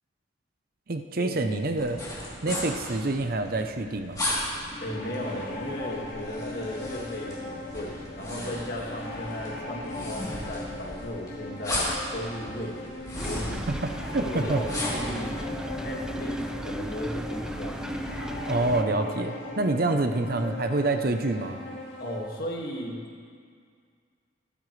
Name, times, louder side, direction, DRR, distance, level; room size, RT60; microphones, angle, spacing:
voice 1, 0.9-2.0 2.4-4.2 13.7-14.6 18.5-21.6, right 2 dB, 50° right, 6 dB, 0.7 m, -27 dB
sound 1, 1.8-15.1, left 1 dB, 20° left, 3.2 m, -36 dB
sound 2, 4.5-22.2, left 2 dB, 75° left, 2.3 m, -39 dB
voice 2, 4.8-13.0 13.2-13.7 14.1-15.5 15.8-18.0 22.0-23.2, equal, 50° left, -2 dB, 2.1 m, -36 dB
sound 3, 13.1-18.8, equal, 5° right, 0.3 m, -35 dB
25.5 x 8.9 x 3.3 m, 2.1 s
head